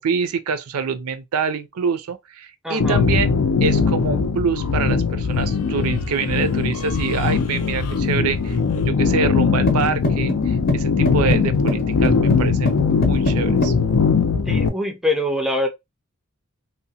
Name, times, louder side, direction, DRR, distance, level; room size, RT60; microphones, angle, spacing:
voice 1, 0.0-3.3 3.6-13.7, right 5 dB, 75° right, 0.4 m, -25 dB
voice 2, 2.6-3.0 14.5-15.7, left 1 dB, ahead, 0.4 m, -23 dB
sound 1, 2.8-14.7, left 5 dB, 85° left, 0.5 m, -20 dB
sound 2, 9.7-13.8, left 2 dB, 45° left, 0.6 m, -25 dB
2.7 x 2.1 x 2.7 m
head